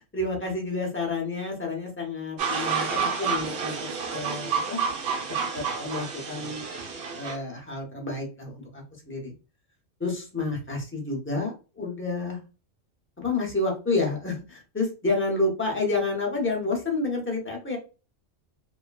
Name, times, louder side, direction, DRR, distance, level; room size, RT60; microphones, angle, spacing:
voice 1, 0.1-3.7 4.0-4.8 5.5-6.7 7.1-9.3 10.0-12.4 13.2-17.8, left 3 dB, 15° left, 0 dB, 0.5 m, -29 dB
sound 1, 2.4-7.3, right 6 dB, 60° right, 0.8 m, -29 dB
3.1 x 2.1 x 2.2 m, 0.31 s
omnidirectional pair, 1.4 m